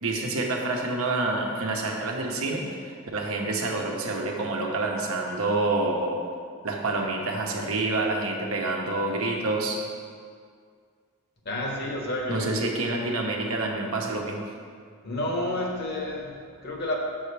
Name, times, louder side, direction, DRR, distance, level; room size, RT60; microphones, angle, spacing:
voice 1, 0.0-6.2 6.6-9.8 12.3-14.5, right 2 dB, 75° right, 0 dB, 1.0 m, -28 dB
voice 2, 11.4-12.6 15.0-16.9, left 1 dB, 50° left, -1 dB, 1.2 m, -30 dB
7.8 x 6.4 x 3.3 m, 2.1 s
head